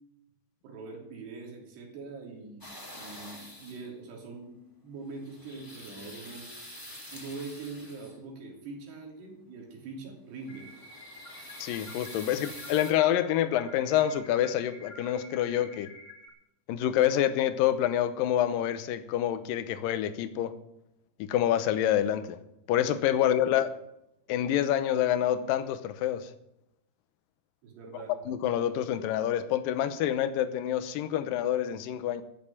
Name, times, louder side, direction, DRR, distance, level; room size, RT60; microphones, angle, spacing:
voice 1, 0.6-6.5 7.1-10.7 23.2-23.5 27.6-28.1, right 3 dB, 80° right, 5.2 m, -43 dB
sound 1, 2.6-3.9 5.1-8.3 10.3-12.9, left 1 dB, 5° left, 1.9 m, -46 dB
sound 2, 10.5-16.3, left 2 dB, 25° left, 2.4 m, -49 dB
voice 2, 11.6-15.9 16.7-20.5 21.2-22.4 22.7-23.7 24.3-26.3 28.3-32.2, left 11 dB, 75° left, 2.2 m, -27 dB
14.0 x 7.1 x 8.9 m
omnidirectional pair, 4.8 m